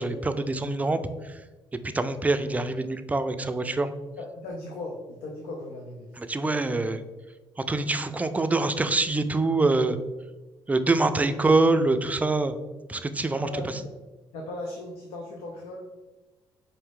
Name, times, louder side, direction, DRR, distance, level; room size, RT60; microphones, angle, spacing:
voice 1, 0.0-1.3 1.9-3.9 6.2-7.0 7.6-10.0 10.7-12.5 12.9-13.5, right 2 dB, 15° right, 10 dB, 0.3 m, -25 dB
voice 2, 4.2-6.1 13.3-13.9 14.3-15.9, left 2 dB, 85° left, 1 dB, 0.5 m, -37 dB
4.6 x 2.6 x 3.6 m, 1.2 s
supercardioid pair, 70°, 9 cm